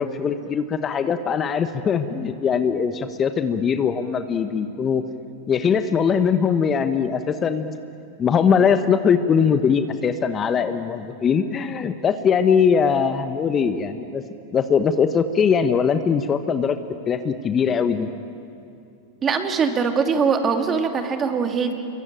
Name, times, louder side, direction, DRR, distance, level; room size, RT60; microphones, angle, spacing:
voice 1, 0.0-5.0 5.5-7.8 8.2-14.2 14.5-16.8 17.1-18.1, left 6 dB, 25° left, 9 dB, 1.2 m, -21 dB
voice 2, 19.2-21.7, right 5 dB, 25° right, 5 dB, 2.8 m, -22 dB
28.0 x 23.0 x 9.2 m, 2.5 s
figure-of-eight pair, 95°, 0 cm